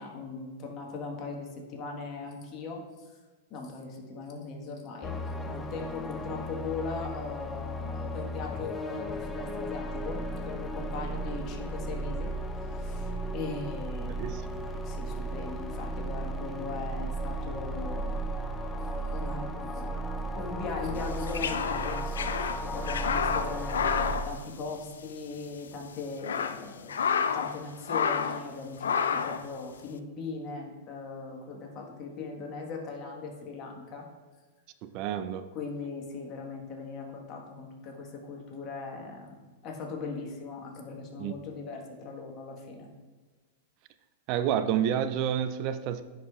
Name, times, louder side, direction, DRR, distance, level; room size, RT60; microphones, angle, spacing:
voice 1, 0.0-3.1 3.5-5.2 5.5-12.3 12.7-18.2 19.1-19.9 20.3-22.3 22.6-34.1 35.5-39.4 39.6-42.9, left 4 dB, 40° left, 1 dB, 1.4 m, -39 dB
sound 1, 5.0-24.2, right 1 dB, 15° left, 0.5 m, -35 dB
voice 2, 14.2-14.6 34.8-35.5 41.2-41.3 44.3-46.0, right 9 dB, 45° right, 11 dB, 0.4 m, -29 dB
sound 2, 21.0-25.1 25.4-25.5 26.0-27.6 27.9-28.5 28.8-29.5, left 6 dB, 85° left, 0.3 m, -30 dB
10.5 x 4.9 x 2.4 m, 1.4 s
hypercardioid pair, 115°, 0 cm